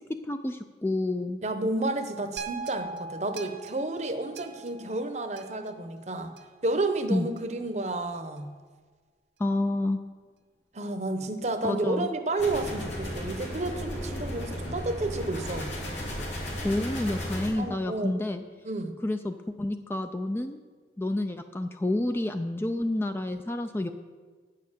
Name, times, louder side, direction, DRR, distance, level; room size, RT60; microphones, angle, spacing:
voice 1, 0.3-1.4 7.1-7.3 9.4-10.0 11.6-12.1 16.6-18.4 19.0-20.6 21.0-23.9, left 1 dB, 15° left, 7 dB, 0.3 m, -29 dB
voice 2, 1.4-6.3 6.6-8.5 10.7-15.7 17.6-18.1 18.6-18.9, right 2 dB, 40° right, 8 dB, 0.8 m, -31 dB
sound 1, 2.4-6.7 7.4-7.5, right 4 dB, 85° right, 1.2 m, -41 dB
sound 2, 12.4-17.5, equal, 90° left, 3.1 m, -35 dB
9.2 x 6.6 x 7.3 m, 1.5 s
head